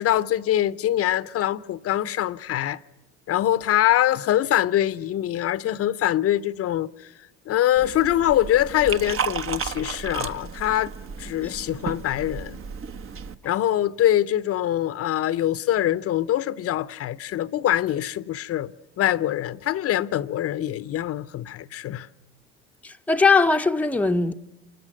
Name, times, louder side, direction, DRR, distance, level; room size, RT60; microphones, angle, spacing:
voice 1, 0.0-2.8 3.3-7.1 7.5-10.9 11.2-12.6 13.4-18.7 19.0-22.1, left 12 dB, 45° left, 0.8 m, -24 dB
Liquid, 7.7-13.3, right 6 dB, 40° right, 1.3 m, -33 dB
voice 2, 22.8-24.3, left 4 dB, 5° left, 0.8 m, -20 dB
28.5 x 25.0 x 6.5 m
hypercardioid pair, 85°, 32 cm